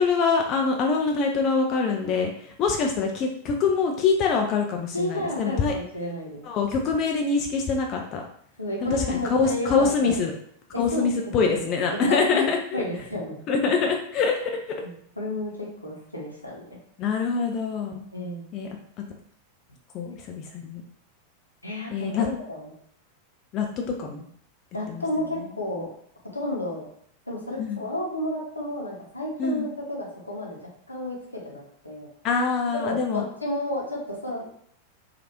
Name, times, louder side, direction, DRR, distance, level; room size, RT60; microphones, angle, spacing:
voice 1, 0.0-5.7 6.4-8.2 8.8-10.3 10.8-12.8 13.5-14.8 17.0-18.0 18.5-18.7 19.9-20.8 21.9-22.3 23.5-23.7 24.0-24.3 24.9-25.0 25.4-25.5 27.6-27.9 29.4-29.7 32.2-33.2, left 5 dB, 35° left, 2 dB, 0.4 m, -24 dB
voice 2, 4.9-6.4 8.6-10.2 10.7-11.6 11.9-12.5 12.7-13.4 14.8-16.8 18.1-18.4 21.6-22.7 24.7-25.9 26.3-26.9 27.3-30.6 30.9-32.1 32.8-34.5, left 1 dB, 85° left, -3 dB, 0.8 m, -31 dB
2.9 x 2.4 x 2.9 m, 0.66 s
figure-of-eight pair, 90°, 0 cm